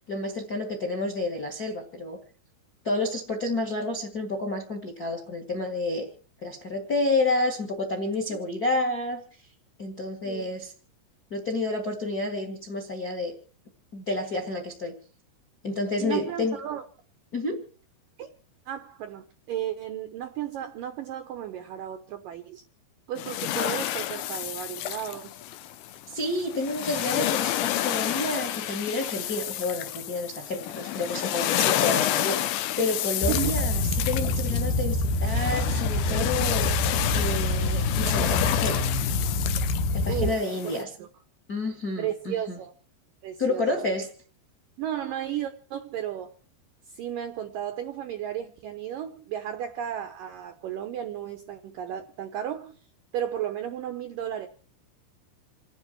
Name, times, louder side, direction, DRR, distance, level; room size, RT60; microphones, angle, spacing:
voice 1, 0.1-2.2 2.8-6.1 6.4-9.2 9.8-10.7 11.3-13.3 13.9-15.0 15.6-16.6 17.3-17.6 26.1-36.7 37.1-38.9 40.0-40.9 41.5-42.6 43.4-44.1, left 2 dB, 40° left, 3 dB, 1.3 m, -30 dB
voice 2, 16.0-16.8 18.2-18.3 18.7-22.6 23.1-25.4 32.8-32.9 33.3-33.6 40.1-40.4 41.0-41.1 42.0-42.7 43.2-43.8 44.8-46.3 46.9-52.8 53.1-54.5, right 10 dB, 75° right, 7 dB, 2.0 m, -34 dB
sound 1, 23.2-40.8, left 13 dB, 85° left, 3.3 m, -30 dB
sound 2, 33.2-40.3, left 2 dB, 70° left, 2.6 m, -26 dB
29.0 x 9.7 x 4.7 m, 0.40 s
omnidirectional pair, 5.2 m